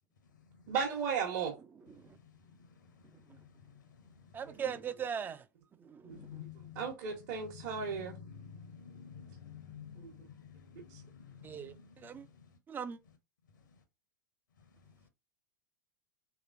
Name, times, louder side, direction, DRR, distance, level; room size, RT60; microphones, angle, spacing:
voice 1, 0.7-1.5 6.0-6.2 6.8-8.2 10.0-10.1, right 6 dB, 55° right, 1.0 m, -35 dB
voice 2, 4.3-5.4 5.8-6.3 11.4-11.7 12.0-12.3 12.7-13.0, right 7 dB, 20° right, 0.3 m, -39 dB
voice 3, 6.1-6.9 7.4-11.5, left 7 dB, 75° left, 0.8 m, -50 dB
3.2 x 2.9 x 2.5 m
figure-of-eight pair, 90°, 10 cm